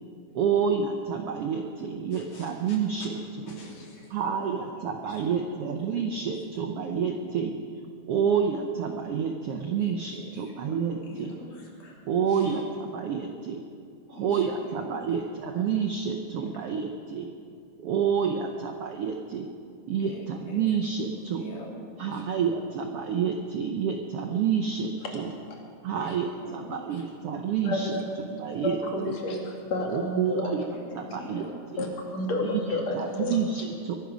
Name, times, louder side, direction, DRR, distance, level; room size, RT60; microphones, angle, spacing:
voice 1, 0.3-3.2 3.5-3.6 4.1-7.6 8.1-11.3 12.1-13.6 14.1-17.3 17.8-19.5 19.9-21.4 22.0-25.3 25.8-28.0 28.4-28.8 29.0-29.1 29.9-30.6 30.9-31.5 31.7-31.9 32.4-33.9, right 7 dB, 90° right, 4 dB, 1.3 m, -29 dB
voice 2, 2.1-2.8 3.5-4.6 5.1-5.2 5.9-6.0 11.0-12.0 12.3-12.6 14.1-15.0 15.5-15.6 20.1-20.7 21.4-21.7 22.0-22.2 26.0-27.0 30.9-31.5, left 3 dB, 70° left, -3 dB, 4.5 m, -46 dB
voice 3, 27.6-28.0 28.6-30.6 31.1-31.2 31.8-33.4, left 1 dB, 55° left, 0 dB, 3.3 m, -30 dB
23.0 x 12.0 x 5.1 m, 2.3 s
omnidirectional pair, 3.8 m